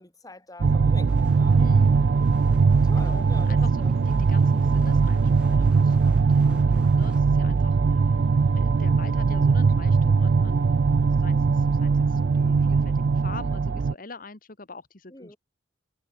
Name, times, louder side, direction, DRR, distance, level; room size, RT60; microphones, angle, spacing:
voice 1, 0.0-1.8 2.8-4.1 15.1-15.4, left 2 dB, 20° left, 3.5 m, -45 dB
sound 1, 0.6-13.9, right 4 dB, 60° right, 0.4 m, -20 dB
sound 2, 1.1-7.2, equal, 5° right, 4.9 m, -52 dB
voice 2, 1.6-1.9 3.0-8.1 8.5-15.3, left 3 dB, 45° left, 1.6 m, -44 dB
head